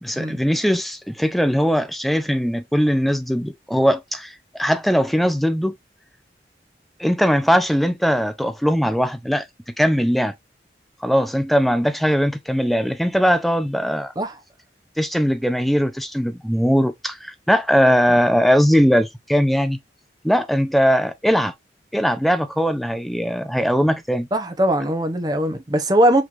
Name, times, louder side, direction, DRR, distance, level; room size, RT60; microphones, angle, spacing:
voice 1, 0.0-5.7 7.0-9.5 9.8-10.3 11.0-14.1 15.0-19.8 20.2-21.5 21.9-24.3, equal, ahead, 0.4 m, -20 dB
voice 2, 24.3-26.2, right 1 dB, 20° right, 0.8 m, -20 dB
5.9 x 3.3 x 2.5 m
head